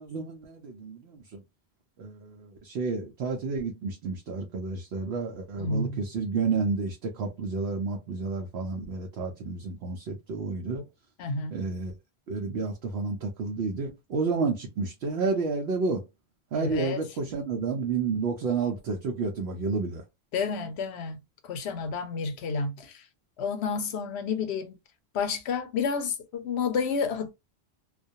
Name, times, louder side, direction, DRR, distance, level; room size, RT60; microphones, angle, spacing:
voice 1, 0.0-1.4 2.0-10.9 11.5-11.9 12.3-16.1 16.5-20.0, right 4 dB, 75° right, 0.8 m, -30 dB
voice 2, 5.6-6.0 11.2-11.6 16.5-17.0 20.3-23.0 23.4-24.8 25.1-27.3, left 5 dB, 80° left, 0.9 m, -30 dB
2.3 x 2.2 x 2.6 m
omnidirectional pair, 1.1 m